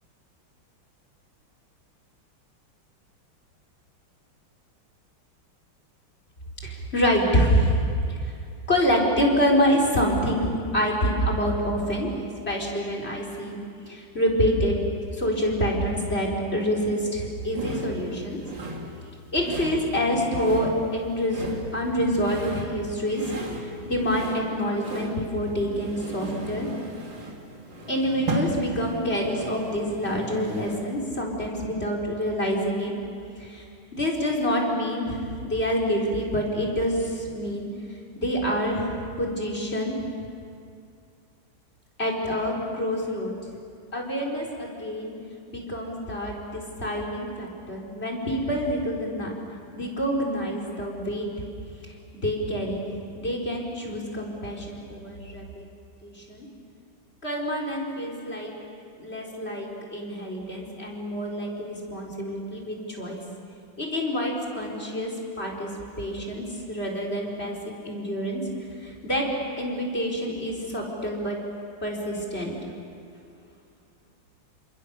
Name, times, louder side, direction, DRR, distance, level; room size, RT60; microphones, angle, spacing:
voice 1, 6.6-7.8 8.1-8.2 8.7-12.1 12.5-13.6 13.9-14.8 15.1-18.4 19.3-23.4 23.6-26.7 27.9-32.9 33.4-33.6 33.9-37.7 38.2-40.0 42.0-43.3 43.9-45.1 45.5-49.3 49.7-51.3 52.1-52.9 53.1-55.6 56.0-56.5 57.2-58.5 59.0-63.2 63.8-65.1 65.4-65.7 66.0-68.4 68.8-69.3 69.6-71.4 71.8-72.5, equal, 30° left, 0 dB, 4.8 m, -27 dB
sound 1, 17.5-31.0, right 1 dB, 65° right, 3.3 m, -36 dB
29.5 x 27.5 x 6.8 m, 2.4 s
omnidirectional pair, 2.2 m